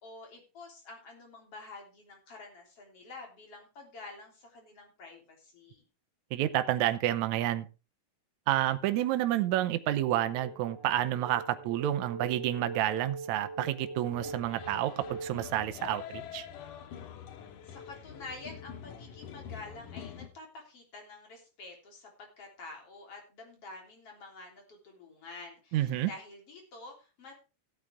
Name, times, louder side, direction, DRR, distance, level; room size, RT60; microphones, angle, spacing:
voice 1, 0.0-5.9 17.6-27.3, left 3 dB, 45° left, 1 dB, 4.4 m, -48 dB
voice 2, 6.3-7.7 8.5-16.5 25.7-26.1, right 13 dB, 75° right, 9 dB, 2.1 m, -29 dB
sound 1, 10.1-15.7, right 4 dB, 40° right, 2.5 m, -43 dB
sound 2, 14.1-20.3, left 8 dB, 90° left, 2.8 m, -45 dB
15.5 x 8.7 x 3.5 m, 0.31 s
omnidirectional pair, 3.6 m